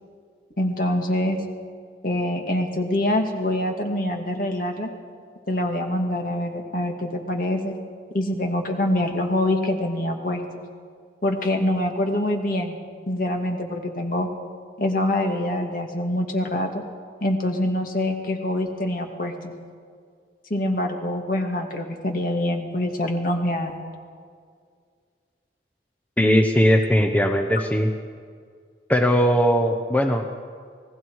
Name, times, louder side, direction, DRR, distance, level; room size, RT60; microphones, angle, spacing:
voice 1, 0.6-1.4 2.0-4.9 5.5-7.8 8.1-10.6 11.2-12.8 13.1-14.3 14.8-16.8 17.2-19.5 20.5-23.8, left 1 dB, 50° left, 3 dB, 2.1 m, -25 dB
voice 2, 26.2-27.9 28.9-30.4, equal, 10° left, 3 dB, 0.9 m, -19 dB
28.5 x 19.5 x 4.8 m, 2.1 s
head